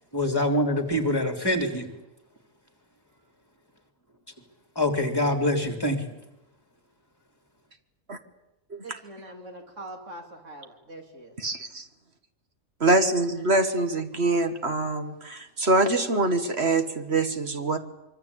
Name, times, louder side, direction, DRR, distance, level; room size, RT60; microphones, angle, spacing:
voice 1, 0.1-1.9 4.8-6.1, left 1 dB, 15° left, 5 dB, 3.7 m, -25 dB
voice 2, 8.8-11.3, right 1 dB, 75° right, 3 dB, 3.5 m, -43 dB
voice 3, 11.4-11.9 12.8-17.8, right 2 dB, 55° right, 7 dB, 2.1 m, -24 dB
25.0 x 24.0 x 8.8 m, 0.91 s
omnidirectional pair, 1.3 m